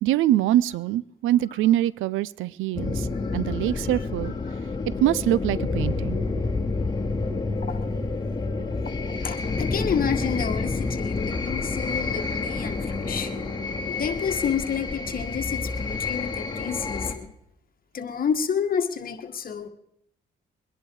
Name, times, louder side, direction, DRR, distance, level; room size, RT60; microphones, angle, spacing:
voice 1, 0.0-3.1 3.3-4.3 5.0-6.2, right 13 dB, 85° right, 21 dB, 0.5 m, -23 dB
sound 1, 2.7-17.1, left 3 dB, 20° left, 2.7 m, -29 dB
voice 2, 8.8-13.4 13.9-17.3 17.9-19.7, left 7 dB, 45° left, 7 dB, 1.8 m, -30 dB
23.0 x 10.5 x 4.8 m, 0.73 s
cardioid pair, 90°, 20 cm